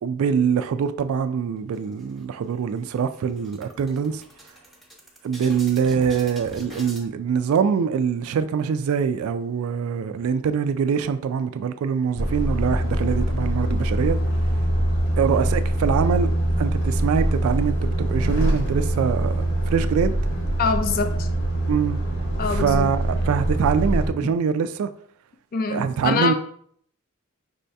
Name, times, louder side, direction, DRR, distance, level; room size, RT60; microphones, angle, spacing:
voice 1, 0.0-4.2 5.2-14.2 15.2-16.3 16.6-19.3 19.7-20.1 21.7-22.0 22.5-24.9 25.7-26.3, right 7 dB, 80° right, 0.3 m, -24 dB
sound 1, 1.7-2.5 2.8-3.0 3.3-7.0, equal, ahead, 0.7 m, -42 dB
Truck, 12.2-24.1, right 1 dB, 65° left, 1.1 m, -23 dB
voice 2, 20.6-21.3 22.4-22.9 25.5-26.3, left 5 dB, 45° left, 0.4 m, -24 dB
5.4 x 2.7 x 3.3 m
head